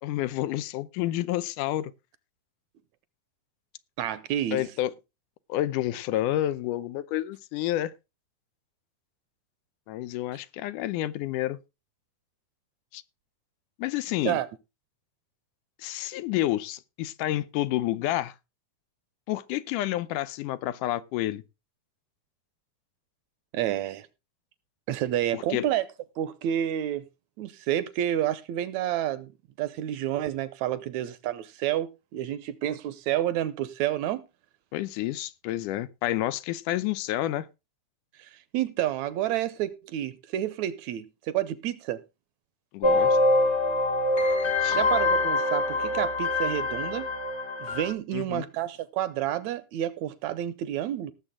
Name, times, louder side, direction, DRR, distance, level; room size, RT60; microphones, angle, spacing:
voice 1, 0.0-1.9 4.5-4.9 5.5-7.9 9.9-11.6 12.9-13.0 13.8-14.4 15.8-18.3 19.3-21.4 25.3-25.7 34.7-37.5 42.7-43.2 44.6-44.8 48.1-48.5, left 14 dB, 85° left, 2.3 m, -29 dB
voice 2, 4.0-4.7 14.2-14.5 23.5-24.1 24.9-25.8 26.2-27.1 27.4-29.3 29.6-34.2 38.2-42.0 44.7-47.1 47.6-51.1, right 12 dB, 75° right, 1.9 m, -29 dB
sound 1, 42.8-47.9, left 2 dB, 70° left, 0.6 m, -24 dB
18.0 x 7.4 x 3.7 m
omnidirectional pair, 3.6 m